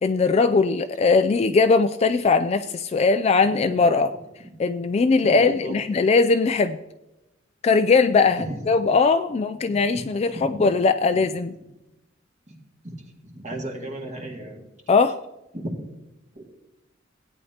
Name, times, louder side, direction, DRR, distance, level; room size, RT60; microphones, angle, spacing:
voice 1, 0.0-4.1 4.6-6.8 7.6-11.5 14.9-15.2, left 4 dB, 35° left, 9 dB, 0.3 m, -20 dB
voice 2, 5.2-5.8 8.4-8.7 9.7-9.8 10.3-10.7 12.5-12.6 12.8-12.9 13.2-14.6 15.5-15.8 16.4-16.5, right 1 dB, 40° right, 0 dB, 2.0 m, -34 dB
17.0 x 9.1 x 2.9 m, 0.94 s
head